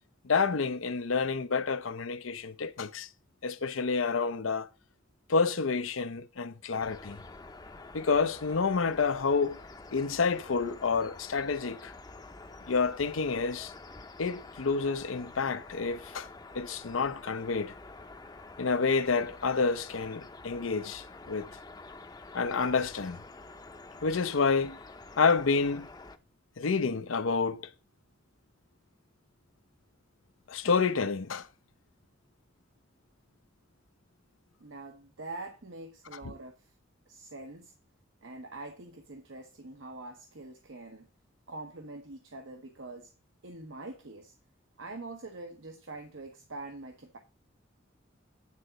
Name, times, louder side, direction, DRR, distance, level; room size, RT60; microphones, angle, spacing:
voice 1, 0.2-3.1 3.4-4.7 5.3-7.2 7.9-9.6 9.9-11.9 12.7-13.7 14.2-16.3 16.5-17.7 18.6-21.5 22.3-23.2 24.0-24.8 25.2-25.9 26.6-27.7 30.5-31.5 36.1-36.3, left 4 dB, 90° left, 0.7 m, -29 dB
sound 1, 6.8-26.2, left 3 dB, 20° left, 0.6 m, -48 dB
voice 2, 34.6-36.7 37.1-37.7 38.2-41.1 41.5-43.1 43.4-44.3 44.8-47.2, right 2 dB, 80° right, 1.1 m, -44 dB
9.7 x 4.0 x 6.4 m
head